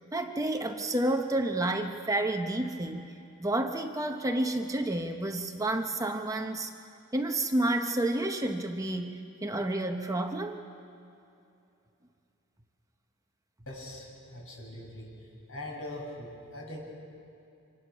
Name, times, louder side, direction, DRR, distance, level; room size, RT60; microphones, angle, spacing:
voice 1, 0.0-3.1 3.4-6.7 7.1-10.6, right 1 dB, 15° right, 5 dB, 0.8 m, -30 dB
voice 2, 13.7-15.1 15.5-16.8, left 1 dB, 65° left, -2 dB, 6.4 m, -41 dB
26.5 x 19.5 x 6.2 m, 2.6 s
head